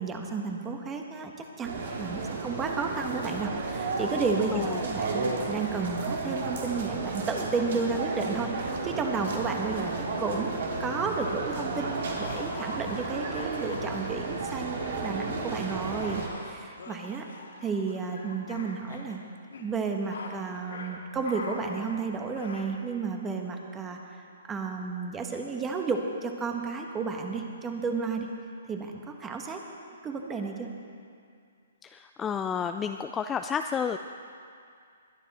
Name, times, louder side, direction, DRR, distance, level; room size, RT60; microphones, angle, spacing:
voice 1, 0.0-17.2 17.6-19.2 19.6-24.2 24.5-28.3 28.7-29.6 30.0-30.7, right 4 dB, 15° right, 3 dB, 1.3 m, -32 dB
sound 1, 1.6-16.3, right 3 dB, 65° right, 2.5 m, -33 dB
voice 2, 4.5-4.8 31.8-34.0, left 7 dB, 15° left, 7 dB, 0.3 m, -31 dB
sound 2, 11.0-15.0 15.4-19.2 19.5-19.7 20.0-20.4 20.7-20.9 21.2-22.6, left 3 dB, 85° left, 2.6 m, -44 dB
21.5 x 10.0 x 4.2 m, 2.3 s
hypercardioid pair, 150°, 0 cm